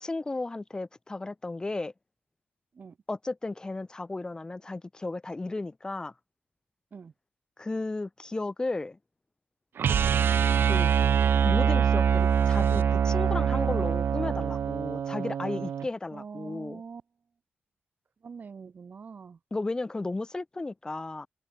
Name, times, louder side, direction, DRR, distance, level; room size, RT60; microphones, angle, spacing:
voice 1, 0.0-1.9 3.1-6.1 7.6-9.0 10.7-10.9 11.4-16.8 19.5-21.3, left 2 dB, 20° left, 0.6 m, -34 dB
sound 1, 9.8-15.9, right 8 dB, 70° right, 0.6 m, -24 dB
voice 2, 16.1-17.0 18.2-19.4, right 5 dB, 50° right, 0.9 m, -44 dB
wide cardioid pair, 105°, 4 cm